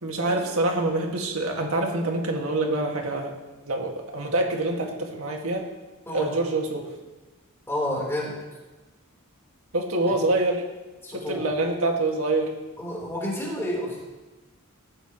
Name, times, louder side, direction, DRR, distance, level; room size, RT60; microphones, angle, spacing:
voice 1, 0.0-3.3 3.6-5.7 6.1-6.9 9.7-10.6 11.1-12.5, right 2 dB, 70° right, 1 dB, 2.1 m, -26 dB
voice 2, 7.7-8.4 11.0-11.5 12.8-14.0, left 1 dB, 10° left, -4 dB, 3.9 m, -30 dB
19.5 x 14.0 x 3.1 m, 1.2 s
head